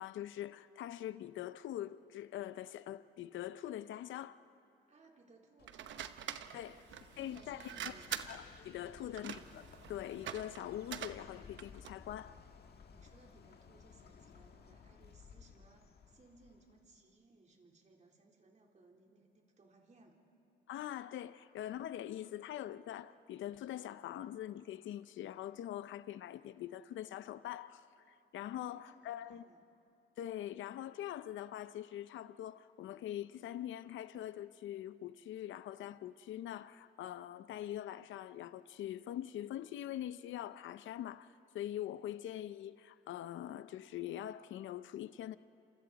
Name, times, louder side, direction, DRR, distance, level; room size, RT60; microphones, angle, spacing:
voice 1, 0.0-4.4 6.5-6.7 7.2-7.7 8.3-9.6 9.9-12.4 20.7-29.4 30.2-45.4, left 12 dB, 75° left, 0.6 m, -43 dB
voice 2, 4.9-6.2 6.7-8.1 9.0-9.2 12.9-20.2 28.5-29.6, right 3 dB, 35° right, 3.7 m, -63 dB
Bird, 5.6-17.0, left 6 dB, 55° left, 1.6 m, -58 dB
sound 1, 5.7-12.0, right 9 dB, 70° right, 1.0 m, -45 dB
29.0 x 27.0 x 4.1 m
cardioid pair, 90°, 20 cm